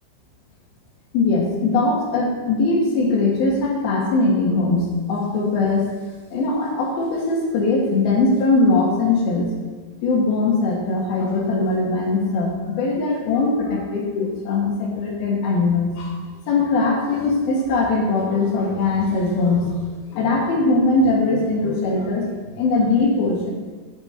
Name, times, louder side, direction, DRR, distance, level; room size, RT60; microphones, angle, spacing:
voice 1, 1.1-5.9 6.3-9.5 10.0-16.1 16.5-19.8 20.1-22.3 22.6-23.5, left 3 dB, 70° left, -2 dB, 3.0 m, -20 dB
8.4 x 7.8 x 4.3 m, 1.4 s
omnidirectional pair, 4.8 m